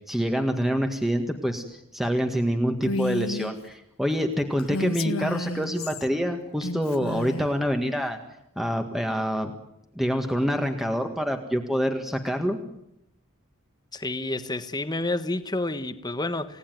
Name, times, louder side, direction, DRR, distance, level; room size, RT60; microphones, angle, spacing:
voice 1, 0.1-8.2 8.6-9.5 10.0-12.6, equal, ahead, 1.8 m, -26 dB
Female speech woman speaking, 2.8-3.5 4.6-6.1 6.6-7.5, left 2 dB, 75° left, 1.0 m, -31 dB
voice 2, 13.9-16.6, left 2 dB, 20° left, 1.3 m, -29 dB
29.0 x 17.5 x 9.4 m
head